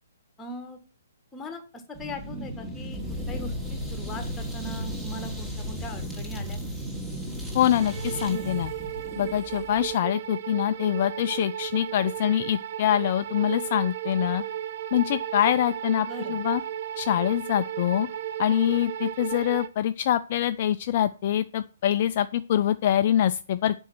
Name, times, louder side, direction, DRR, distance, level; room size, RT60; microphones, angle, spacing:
voice 1, 0.4-0.8 1.3-1.6 2.0-6.6 16.0-16.4, left 1 dB, 10° left, 7 dB, 1.8 m, -40 dB
sound 1, 1.9-9.9, equal, 5° right, 2.5 m, -35 dB
voice 2, 7.5-8.7 9.1-14.4 14.9-16.6 17.0-18.1 18.4-23.7, left 11 dB, 40° left, 11 dB, 0.4 m, -24 dB
sound 2, 7.8-19.7, right 11 dB, 45° right, 0.9 m, -34 dB
8.4 x 5.4 x 7.7 m, 0.36 s
figure-of-eight pair, 125°, 0 cm